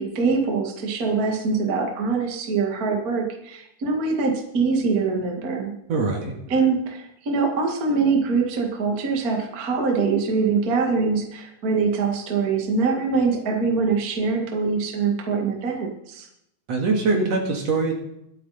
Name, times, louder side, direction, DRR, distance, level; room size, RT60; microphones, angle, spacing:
voice 1, 0.0-5.7 6.5-16.3, right 4 dB, 35° right, 2 dB, 1.9 m, -23 dB
voice 2, 5.9-6.3 16.7-17.9, right 3 dB, 55° right, 2 dB, 2.9 m, -22 dB
23.0 x 8.4 x 4.2 m, 0.80 s
omnidirectional pair, 3.6 m